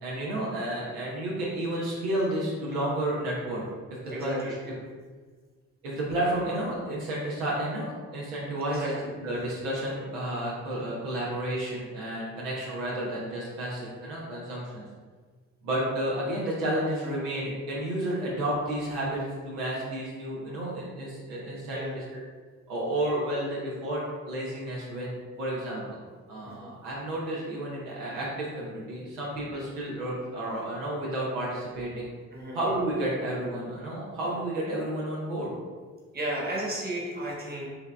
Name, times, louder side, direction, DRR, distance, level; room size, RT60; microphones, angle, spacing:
voice 1, 0.0-3.6 4.2-4.6 5.8-14.9 15.6-22.2 22.7-26.0 26.3-32.1 32.5-35.5, right 1 dB, 70° right, -5 dB, 0.9 m, -31 dB
voice 2, 4.1-4.5 8.7-8.9 21.7-21.9 26.4-26.7 29.5-29.6 32.3-32.6 36.1-37.7, right 1 dB, 25° right, -4 dB, 1.3 m, -33 dB
5.4 x 3.4 x 2.2 m, 1.5 s
figure-of-eight pair, 40°, 40 cm